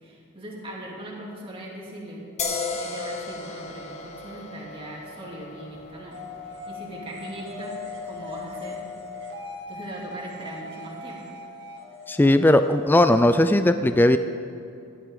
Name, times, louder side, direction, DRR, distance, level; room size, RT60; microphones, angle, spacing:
voice 1, 0.0-2.2 2.7-7.8 8.0-8.8 9.7-11.4, right 1 dB, 25° right, -3 dB, 2.6 m, -39 dB
sound 1, 2.4-9.7, left 4 dB, 30° left, 1.0 m, -37 dB
sound 2, 6.1-13.6, left 3 dB, 55° right, 2.0 m, -39 dB
voice 2, 12.1-14.2, left 1 dB, 10° left, 9 dB, 0.3 m, -18 dB
17.5 x 12.0 x 3.8 m, 2.6 s
head